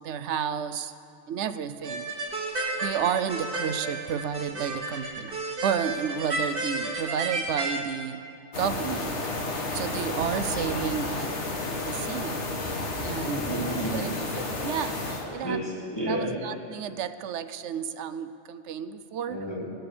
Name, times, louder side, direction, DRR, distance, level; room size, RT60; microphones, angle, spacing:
voice 1, 0.0-0.9 1.3-2.1 2.8-8.2 8.6-9.2 9.7-11.4 11.9-12.4 13.0-13.4 13.9-14.3 14.6-15.1 15.3-15.6 16.0-19.4, right 8 dB, 80° right, 12 dB, 0.9 m, -31 dB
sound 1, 1.8-7.8, right 2 dB, 50° right, 1.6 m, -32 dB
sound 2, 8.5-15.2, left 2 dB, 75° left, 1.7 m, -31 dB
voice 2, 13.1-13.9 15.2-16.4 19.3-19.7, right 1 dB, 20° left, -4 dB, 1.6 m, -32 dB
18.5 x 7.9 x 6.9 m, 2.5 s
omnidirectional pair, 1.2 m